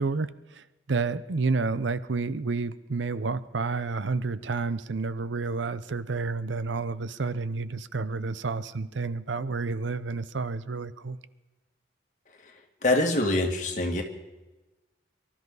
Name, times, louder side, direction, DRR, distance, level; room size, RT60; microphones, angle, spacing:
voice 1, 0.0-11.2, right 4 dB, 90° right, 15 dB, 0.7 m, -30 dB
voice 2, 12.8-14.0, left 2 dB, 40° left, 2 dB, 2.1 m, -24 dB
24.0 x 13.5 x 4.0 m, 1.1 s
head